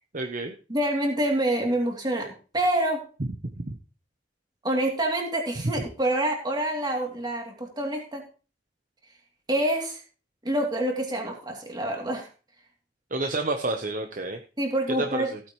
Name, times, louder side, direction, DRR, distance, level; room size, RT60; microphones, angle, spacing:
voice 1, 0.1-0.5 3.2-3.3 3.7-3.8 13.1-14.4 14.9-15.4, right 2 dB, 50° right, 5 dB, 0.9 m, -29 dB
voice 2, 0.7-3.0 4.6-8.2 9.5-10.0 10.4-12.3 14.6-15.3, right 1 dB, 25° right, 1 dB, 2.8 m, -27 dB
16.0 x 8.7 x 3.1 m, 0.36 s
head